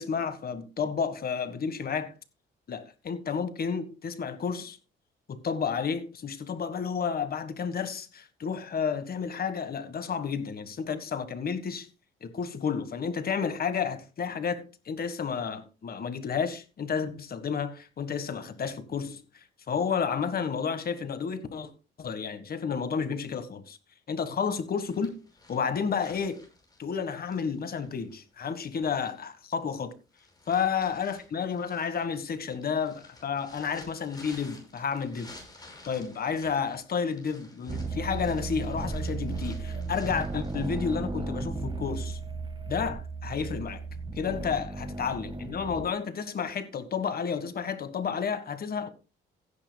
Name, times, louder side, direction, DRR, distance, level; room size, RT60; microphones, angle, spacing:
voice 1, 0.0-2.1 2.7-4.8 5.3-11.9 12.2-21.7 22.0-23.8 24.1-25.1 25.5-26.4 26.8-29.9 30.5-35.3 35.8-42.2 42.7-43.8 44.1-48.9, left 6 dB, 50° left, 1.6 m, -31 dB
sound 1, 24.8-29.4 29.9-40.8, left 2 dB, 20° left, 5.6 m, -53 dB
sound 2, 37.7-45.9, right 3 dB, 25° right, 1.7 m, -35 dB
15.5 x 10.0 x 2.3 m
cardioid pair, 90°, 20 cm